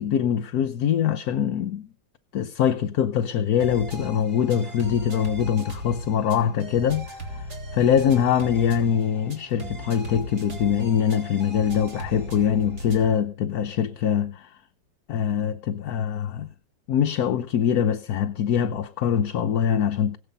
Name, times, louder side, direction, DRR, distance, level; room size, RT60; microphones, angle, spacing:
voice 1, 0.0-1.9 2.3-7.5 7.7-14.5 15.1-16.5 16.9-20.2, left 8 dB, 60° left, 1.3 m, -23 dB
sound 1, 3.6-13.2, equal, 60° right, 3.8 m, -37 dB
20.5 x 7.7 x 5.4 m
omnidirectional pair, 2.0 m